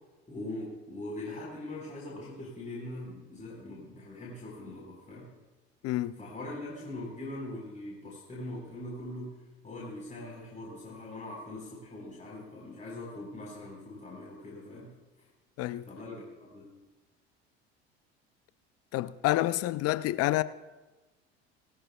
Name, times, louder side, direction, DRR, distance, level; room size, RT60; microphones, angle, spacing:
voice 1, 0.3-5.3 6.2-15.0 15.9-16.8, left 1 dB, 25° left, 4.7 m, -42 dB
voice 2, 5.8-6.1 15.6-15.9 18.9-20.4, left 16 dB, 45° left, 0.6 m, -28 dB
19.0 x 14.5 x 2.4 m
hypercardioid pair, 65°, 33 cm